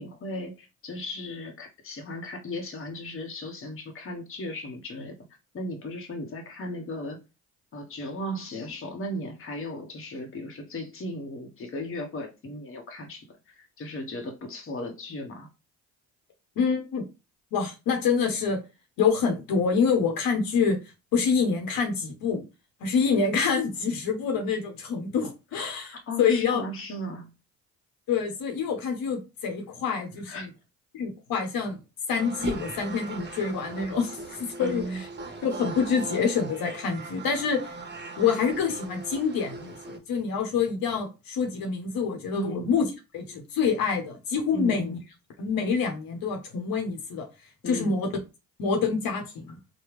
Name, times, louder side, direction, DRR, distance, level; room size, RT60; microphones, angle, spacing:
voice 1, 0.0-5.1 5.5-7.2 7.7-15.5 26.1-27.3 30.3-30.5 34.6-35.0 42.3-42.7 44.5-45.0 47.6-48.0, left 1 dB, 35° left, 0.9 m, -36 dB
voice 2, 16.6-17.0 17.5-18.6 19.0-20.8 21.1-22.4 22.8-26.6 28.1-30.5 30.9-31.8 32.1-35.1 35.4-37.8 38.2-42.9 43.1-45.0 45.4-47.3 47.7-48.1 48.6-49.5, left 5 dB, 70° left, 1.0 m, -26 dB
sound 1, 32.1-40.0, right 3 dB, 30° right, 0.9 m, -39 dB
3.5 x 2.2 x 3.1 m
supercardioid pair, 65°, 36 cm